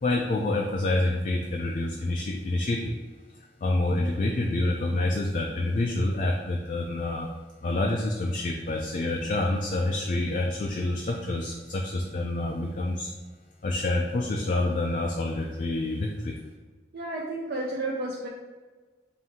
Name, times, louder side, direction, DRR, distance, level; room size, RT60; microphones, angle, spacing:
voice 1, 0.0-2.9 3.6-7.3 7.6-13.1 13.6-16.3, left 2 dB, 45° left, 0 dB, 0.3 m, -27 dB
voice 2, 16.9-18.3, right 2 dB, 60° right, -3 dB, 0.4 m, -31 dB
4.3 x 2.6 x 3.5 m, 1.3 s
head